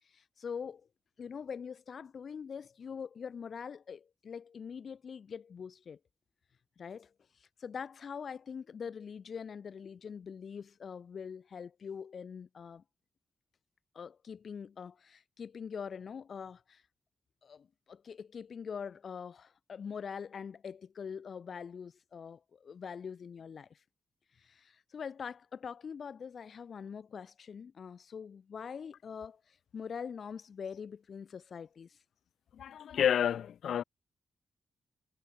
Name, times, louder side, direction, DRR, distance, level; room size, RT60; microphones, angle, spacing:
voice 1, 0.0-0.9 1.2-6.0 6.8-12.8 13.9-16.9 17.4-23.8 24.3-32.0, left 6 dB, 55° left, 1.2 m, -44 dB
voice 2, 32.5-33.8, left 9 dB, 80° left, 1.3 m, -30 dB
cardioid pair, 105°, 0 cm